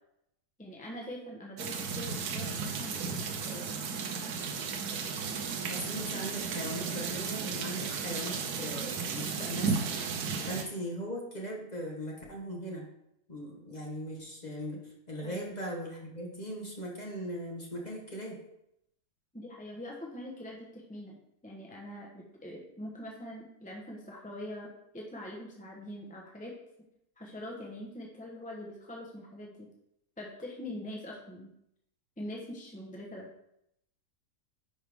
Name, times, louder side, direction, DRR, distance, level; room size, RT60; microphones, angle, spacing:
voice 1, 0.6-3.8 15.2-15.4 19.3-26.6 27.2-29.7 30.2-31.5 32.2-33.3, left 1 dB, 5° left, -2 dB, 0.9 m, -43 dB
sound 1, 1.6-10.6, right 5 dB, 75° right, 1.3 m, -34 dB
voice 2, 5.7-9.9 10.4-12.9 13.3-18.4, equal, 25° left, -2 dB, 1.4 m, -39 dB
9.9 x 4.6 x 3.6 m, 0.79 s
omnidirectional pair, 1.7 m